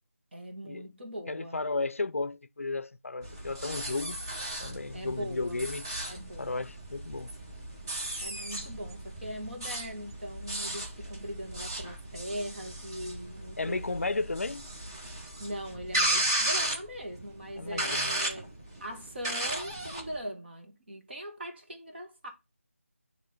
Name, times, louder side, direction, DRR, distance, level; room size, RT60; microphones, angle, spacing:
voice 1, 0.3-1.6 4.9-5.7 6.1-6.6 8.2-14.0 15.4-18.5 18.8-22.3, equal, 45° right, 1.8 m, -40 dB
voice 2, 1.3-4.2 4.6-5.9 6.4-7.3 13.6-14.7 17.6-18.2, left 3 dB, 70° left, 0.5 m, -34 dB
sound 1, 3.2-20.2, right 1 dB, 20° right, 1.0 m, -35 dB
8.9 x 3.1 x 4.3 m
figure-of-eight pair, 165°, 8 cm